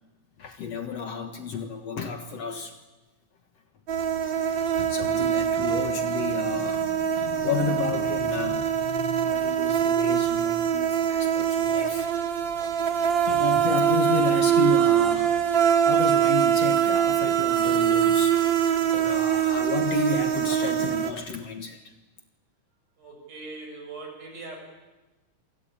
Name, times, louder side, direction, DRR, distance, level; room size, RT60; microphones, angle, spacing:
voice 1, 0.4-2.8 4.2-12.1 12.6-15.4 15.8-18.4 18.9-21.9, left 5 dB, 55° left, 6 dB, 2.3 m, -32 dB
sound 1, 3.9-21.1, right 9 dB, 40° right, 2.2 m, -23 dB
voice 2, 23.0-24.6, right 3 dB, 65° right, 2 dB, 8.9 m, -40 dB
27.5 x 24.5 x 8.8 m, 1.1 s
omnidirectional pair, 3.9 m